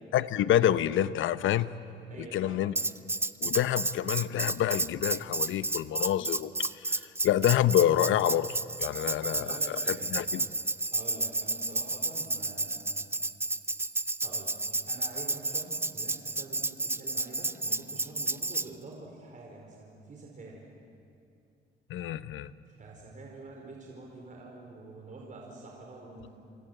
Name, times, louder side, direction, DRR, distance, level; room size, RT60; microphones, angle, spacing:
voice 1, 0.1-1.7 2.2-2.7 3.4-9.6 9.9-10.4 21.9-22.5, left 11 dB, 80° left, 14 dB, 0.9 m, -27 dB
voice 2, 2.1-2.7 3.6-3.7 9.2-10.3 10.9-13.1 14.2-14.6 14.9-20.6 22.7-26.3, right 2 dB, 40° right, -1 dB, 4.7 m, -46 dB
Tambourine, 2.8-18.7, right 2 dB, 10° right, 0.6 m, -31 dB
27.5 x 25.0 x 8.1 m, 2.6 s
cardioid pair, 90°, 20 cm